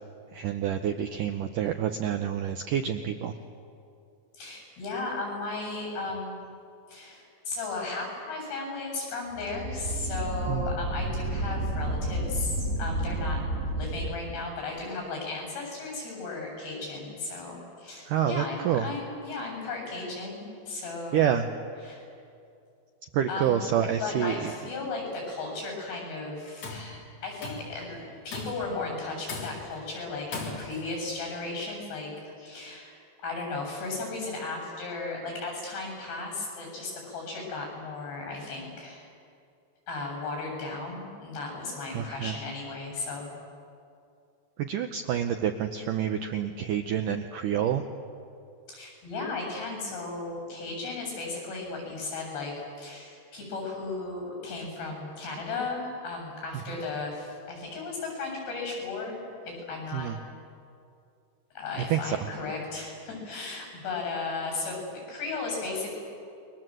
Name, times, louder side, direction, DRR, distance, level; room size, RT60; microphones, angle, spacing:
voice 1, 0.3-3.3 10.5-10.7 18.1-18.9 21.1-21.5 23.1-24.5 41.9-42.3 44.6-47.9 59.9-60.2 61.8-62.2, right 9 dB, 80° right, 7 dB, 1.9 m, -28 dB
voice 2, 4.3-6.4 6.9-13.4 13.7-21.2 21.8-22.0 23.3-23.6 24.0-28.0 28.2-32.1 32.4-39.1 39.9-43.3 48.7-59.2 59.4-60.1 61.5-66.0, left 3 dB, 75° left, 1 dB, 10.0 m, -35 dB
sound 1, 9.3-14.2, right 1 dB, 45° right, 3.1 m, -31 dB
Tools, 26.4-26.9 27.4-27.8 28.3-28.8 29.3-29.8 30.3-30.9, left 3 dB, 40° left, 4.2 m, -38 dB
29.0 x 23.0 x 7.8 m, 2.5 s
omnidirectional pair, 4.8 m